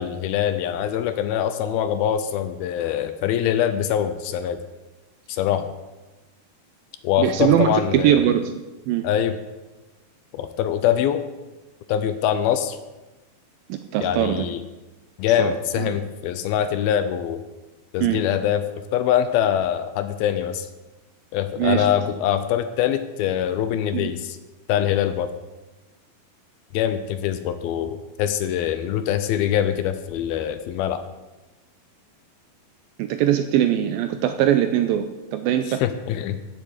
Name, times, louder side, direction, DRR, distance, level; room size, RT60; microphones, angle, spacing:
voice 1, 0.0-4.6 5.3-5.7 7.0-8.2 9.0-9.3 10.3-11.2 11.9-12.8 14.0-14.6 15.2-17.4 17.9-18.6 18.9-20.7 21.3-24.4 24.7-25.3 26.7-31.0 35.8-36.4, left 10 dB, 80° left, 10 dB, 2.4 m, -23 dB
voice 2, 7.2-8.5 8.9-9.1 13.7-14.5 15.4-16.0 18.0-18.2 21.6-21.9 23.9-24.1 33.0-35.1 35.3-35.8, right 11 dB, 80° right, 8 dB, 2.1 m, -21 dB
15.5 x 7.5 x 6.4 m, 1.1 s
omnidirectional pair, 4.6 m